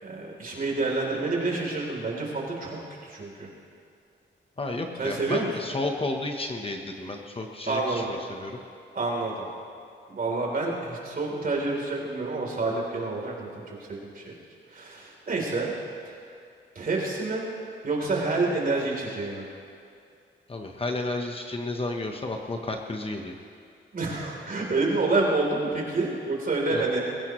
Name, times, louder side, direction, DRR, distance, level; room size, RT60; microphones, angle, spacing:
voice 1, 0.0-3.5 5.0-5.5 7.7-8.1 9.0-9.4 10.1-13.6 13.9-14.3 14.7-15.7 16.1-16.2 16.8-17.4 17.8-19.4 23.9-27.0, right 3 dB, 45° right, -2 dB, 3.5 m, -28 dB
voice 2, 4.6-8.6 20.5-23.3 26.7-26.8, left 2 dB, 30° left, 3 dB, 1.0 m, -32 dB
21.0 x 16.0 x 3.1 m, 2.4 s
wide cardioid pair, 135°, 20 cm